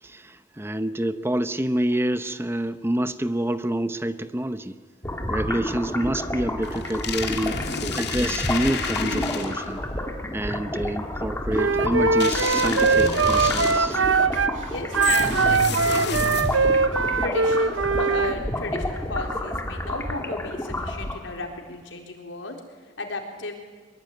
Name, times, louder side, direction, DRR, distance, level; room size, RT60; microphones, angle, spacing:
voice 1, 0.0-4.8 5.3-9.8 10.3-14.0, right 1 dB, 15° right, 12 dB, 0.8 m, -27 dB
sound 1, 5.0-21.5, left 1 dB, 15° left, 2.2 m, -30 dB
sound 2, 6.6-9.8 12.2-14.0 15.0-16.8, left 5 dB, 60° left, 2.6 m, -30 dB
Wind instrument woodwind instrument, 11.6-14.6 14.9-18.4, right 4 dB, 90° right, 1.0 m, -21 dB
voice 2, 14.7-16.9 17.2-22.6 23.0-23.6, left 2 dB, 80° left, 3 dB, 4.3 m, -34 dB
23.5 x 22.5 x 9.4 m, 1.4 s
head